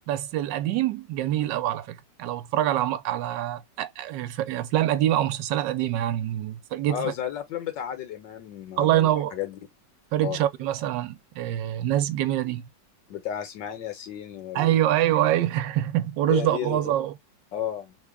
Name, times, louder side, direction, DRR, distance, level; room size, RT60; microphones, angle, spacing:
voice 1, 0.1-7.1 8.8-9.3 10.1-12.7 14.5-17.1, right 13 dB, 85° right, 1.3 m, -25 dB
voice 2, 6.8-9.6 10.2-10.4 13.1-14.8 16.3-16.9 17.5-18.0, left 10 dB, 85° left, 1.6 m, -33 dB
3.5 x 2.3 x 3.4 m
omnidirectional pair, 1.9 m